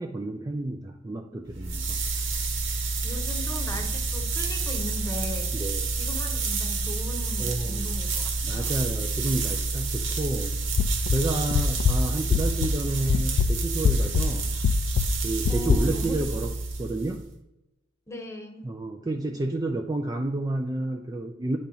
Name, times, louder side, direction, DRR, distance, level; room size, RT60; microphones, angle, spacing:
voice 1, 0.0-2.0 5.5-5.9 7.4-7.9 8.4-10.5 11.1-14.5 15.2-16.5 16.8-17.2 18.6-21.6, right 2 dB, 20° right, 3 dB, 0.4 m, -30 dB
sound 1, 1.5-17.2, right 3 dB, 75° right, 1.1 m, -29 dB
voice 2, 3.0-5.5 5.9-8.7 15.5-16.3 18.1-18.7, left 1 dB, 15° left, 3 dB, 0.9 m, -38 dB
sound 2, 10.8-12.8 13.1-15.8, left 5 dB, 80° left, 0.4 m, -24 dB
9.5 x 4.2 x 3.9 m, 0.92 s
head